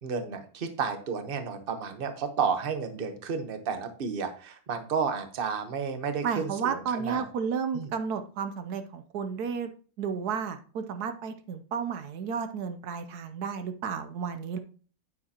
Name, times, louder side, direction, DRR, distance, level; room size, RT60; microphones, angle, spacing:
voice 1, 0.0-7.2 7.7-7.9, right 6 dB, 40° right, 8 dB, 1.1 m, -32 dB
voice 2, 6.2-9.7 10.0-14.6, right 6 dB, 75° right, 9 dB, 1.2 m, -32 dB
9.2 x 8.5 x 2.9 m, 0.41 s
omnidirectional pair, 1.7 m